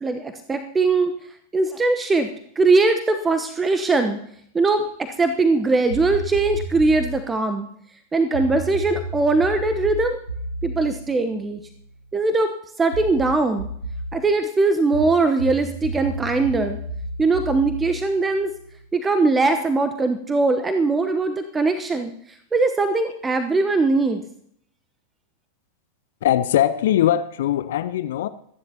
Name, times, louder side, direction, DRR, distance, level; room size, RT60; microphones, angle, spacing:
voice 1, 0.0-1.1 1.5-2.3 2.6-4.2 4.5-7.7 8.1-10.2 10.6-11.6 12.1-12.5 12.8-13.7 14.1-16.8 17.2-18.5 18.9-24.2, right 3 dB, 15° right, 1.0 m, -21 dB
sound 1, 5.9-7.2 8.3-12.0 12.9-14.2 14.9-18.8, right 1 dB, 90° left, 1.4 m, -32 dB
voice 2, 26.2-28.3, left 11 dB, 55° left, 0.6 m, -21 dB
25.0 x 10.5 x 2.9 m
figure-of-eight pair, 90°, 0 cm